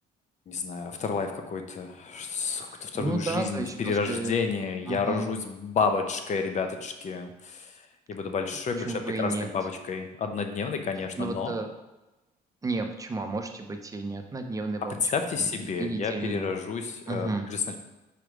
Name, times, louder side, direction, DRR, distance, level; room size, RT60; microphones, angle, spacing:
voice 1, 0.5-11.5 14.9-17.8, left 5 dB, 45° left, 6 dB, 0.8 m, -30 dB
voice 2, 2.6-4.4 4.9-5.3 8.8-9.5 11.2-11.7 12.6-15.0 15.4-16.5 17.1-17.4, right 3 dB, 20° right, 5 dB, 0.7 m, -32 dB
4.9 x 4.8 x 5.0 m, 1.0 s
cardioid pair, 110°, 17 cm